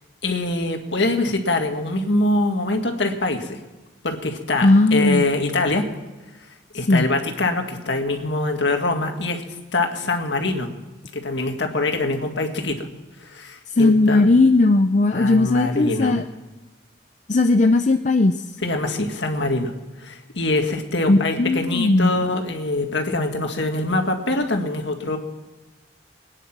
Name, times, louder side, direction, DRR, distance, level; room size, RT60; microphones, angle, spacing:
voice 1, 0.2-3.6 4.0-5.9 6.7-9.4 9.7-10.7 11.1-12.9 13.2-14.3 15.1-16.2 18.6-19.7 20.0-25.2, left 2 dB, 65° left, 4 dB, 1.9 m, -24 dB
voice 2, 4.6-5.2 6.9-7.1 13.8-16.2 17.3-18.4 21.1-22.1, left 2 dB, 40° left, 7 dB, 0.5 m, -17 dB
20.5 x 10.0 x 6.0 m, 1.2 s
head